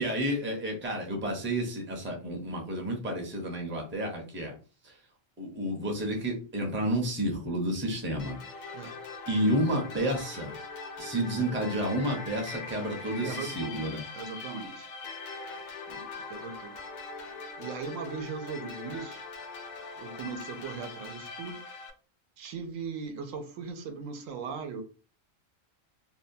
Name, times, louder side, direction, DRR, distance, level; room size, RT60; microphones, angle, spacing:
voice 1, 0.0-4.5 4.8-5.0 5.4-8.4 9.3-10.5 11.0-14.0, equal, 15° right, 0.5 m, -30 dB
sound 1, 8.2-21.9, left 4 dB, 65° left, 0.4 m, -42 dB
voice 2, 13.2-14.9 15.9-16.7 17.6-19.3 19.9-21.6 22.4-24.8, right 5 dB, 85° right, 1.0 m, -39 dB
2.7 x 2.2 x 2.6 m
omnidirectional pair, 1.3 m